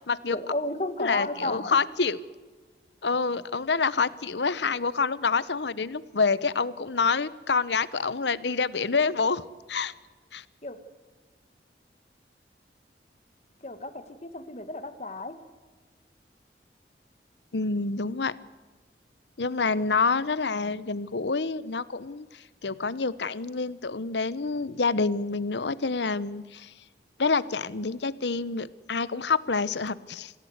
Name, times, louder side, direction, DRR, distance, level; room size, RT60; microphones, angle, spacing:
voice 1, 0.3-1.8 10.6-10.8 13.6-15.4, left 2 dB, 35° left, 10 dB, 1.8 m, -33 dB
voice 2, 1.0-2.2 3.0-9.4 9.7-9.9 10.3-10.4 17.5-18.4 19.4-26.7 27.2-30.3, left 4 dB, 80° left, 18 dB, 0.9 m, -27 dB
26.0 x 16.0 x 8.1 m, 1.3 s
head